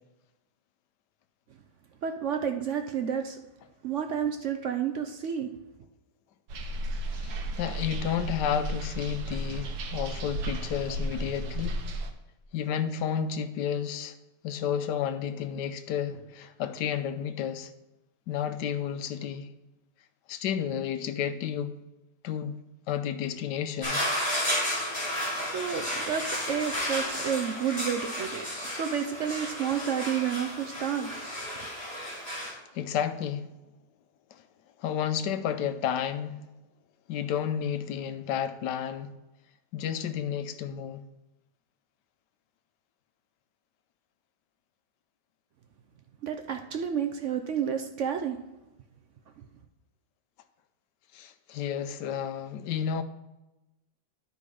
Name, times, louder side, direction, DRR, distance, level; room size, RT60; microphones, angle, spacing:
voice 1, 2.0-3.4 3.8-5.5 25.4-28.5 28.7-31.1 46.2-48.4 49.4-49.5, right 8 dB, 65° right, 0.8 m, -30 dB
sound 1, 6.5-12.1, right 1 dB, 90° right, 1.5 m, -34 dB
voice 2, 7.1-11.8 12.5-14.1 14.4-17.7 18.3-19.5 20.3-21.8 22.2-22.6 22.9-24.0 32.4-33.5 34.3-34.4 34.8-36.4 37.1-39.1 39.7-41.0 51.1-53.0, left 8 dB, 85° left, 1.3 m, -31 dB
sound 2, 23.8-32.5, equal, 20° left, 3.1 m, -32 dB
11.5 x 4.2 x 4.9 m
omnidirectional pair, 1.8 m